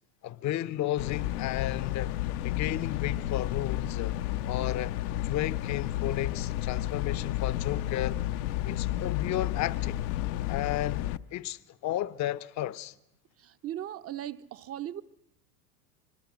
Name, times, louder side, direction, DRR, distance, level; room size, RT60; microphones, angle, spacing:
voice 1, 0.2-2.1 2.4-4.2 4.5-5.0 5.2-8.2 8.6-10.0 10.5-12.9, left 13 dB, 35° left, 0.8 m, -33 dB
sound 1, 1.0-11.2, left 13 dB, 65° left, 0.9 m, -31 dB
voice 2, 13.4-15.0, right 12 dB, 30° right, 0.8 m, -38 dB
25.5 x 21.5 x 6.3 m
hypercardioid pair, 95°, 48 cm